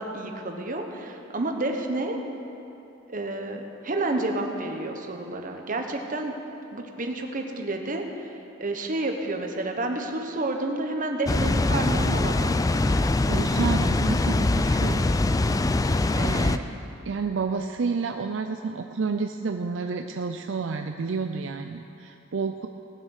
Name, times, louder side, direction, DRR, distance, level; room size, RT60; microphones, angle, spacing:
voice 1, 0.0-2.2 3.1-6.3 6.7-12.6, right 2 dB, 45° right, 3 dB, 1.2 m, -30 dB
Water, 11.3-16.6, left 2 dB, 20° left, 0.3 m, -23 dB
voice 2, 13.3-15.0 16.2-16.6 17.1-22.7, right 4 dB, 70° right, 6 dB, 0.5 m, -30 dB
18.0 x 7.4 x 6.5 m, 2.9 s
head